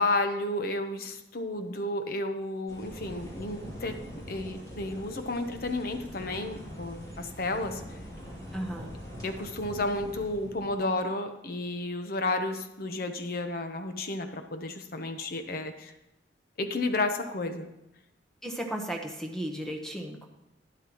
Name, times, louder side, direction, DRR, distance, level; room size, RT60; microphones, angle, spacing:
voice 1, 0.0-7.8 9.2-15.9 16.6-17.7, left 2 dB, 55° left, 7 dB, 0.8 m, -32 dB
sound 1, 2.7-10.8, equal, 20° left, 2.6 m, -43 dB
voice 2, 8.5-8.9 18.4-20.2, right 1 dB, 5° left, 2 dB, 1.0 m, -35 dB
12.0 x 10.5 x 3.0 m, 0.87 s
head